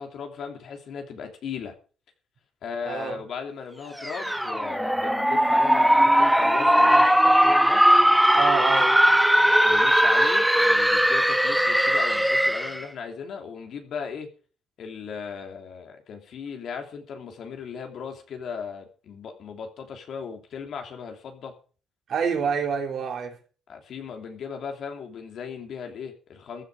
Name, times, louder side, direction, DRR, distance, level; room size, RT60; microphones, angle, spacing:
voice 1, 0.0-1.7 2.6-7.8 9.6-14.3 14.8-21.5 23.7-26.6, left 6 dB, 70° left, 3.1 m, -37 dB
voice 2, 2.9-3.2 8.4-9.0 22.1-23.4, right 6 dB, 65° right, 3.6 m, -27 dB
sound 1, 4.0-12.8, equal, ahead, 1.3 m, -19 dB
15.0 x 11.5 x 5.1 m
cardioid pair, 90°, 0 cm